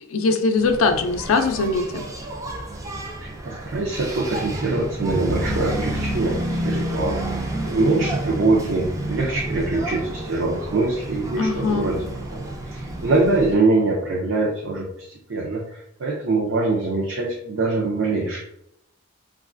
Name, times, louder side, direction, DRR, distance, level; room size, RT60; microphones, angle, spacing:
voice 1, 0.1-2.1 11.4-11.9, left 3 dB, 80° left, 6 dB, 0.4 m, -21 dB
Engine, 0.6-13.6, right 1 dB, 15° right, 0.3 m, -30 dB
voice 2, 3.2-7.4 7.6-12.0 12.3-18.4, right 3 dB, 65° right, -3 dB, 0.5 m, -23 dB
3.1 x 2.4 x 2.4 m, 0.75 s
head